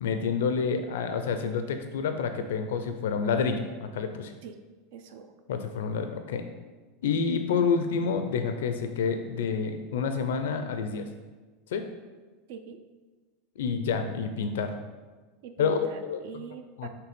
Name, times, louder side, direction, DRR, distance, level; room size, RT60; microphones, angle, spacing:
voice 1, 0.0-4.3 5.5-6.4 7.0-11.1 11.7-11.9 13.6-14.7 15.6-16.4 16.8-16.9, left 5 dB, 85° left, 7 dB, 0.5 m, -28 dB
voice 2, 4.9-5.3 12.5-12.8 15.4-16.9, right 6 dB, 65° right, 7 dB, 0.5 m, -43 dB
5.8 x 3.3 x 5.1 m, 1.3 s
supercardioid pair, 150°, 0 cm